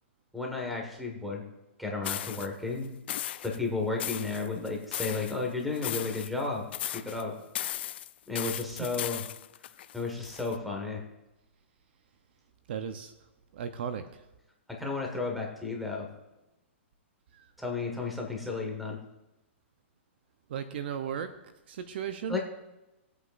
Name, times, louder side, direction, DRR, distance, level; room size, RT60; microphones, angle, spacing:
voice 1, 0.3-1.4 1.8-3.0 3.4-6.6 6.9-7.3 8.3-9.2 9.9-11.0 14.7-16.1 17.6-19.0 22.3-22.4, left 3 dB, ahead, 0 dB, 1.6 m, -33 dB
sound 1, 2.0-2.5 3.1-3.6 4.0-5.4 5.7-6.5 6.7-7.2 7.5-10.6, left 12 dB, 55° left, 0.4 m, -36 dB
voice 2, 12.7-13.1 13.5-14.1 20.5-21.3 21.7-22.4, right 8 dB, 55° right, 9 dB, 0.8 m, -35 dB
20.5 x 8.1 x 2.6 m, 0.97 s
hypercardioid pair, 155°, 7 cm